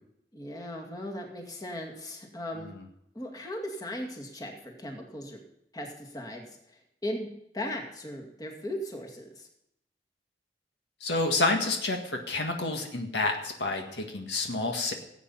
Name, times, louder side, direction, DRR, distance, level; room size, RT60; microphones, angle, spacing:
voice 1, 0.3-2.7 3.1-5.4 5.7-7.3 7.5-9.5, left 1 dB, 20° left, 1 dB, 2.1 m, -38 dB
voice 2, 11.0-14.9, left 2 dB, 75° left, 3 dB, 1.8 m, -29 dB
16.5 x 8.4 x 5.5 m, 0.78 s
head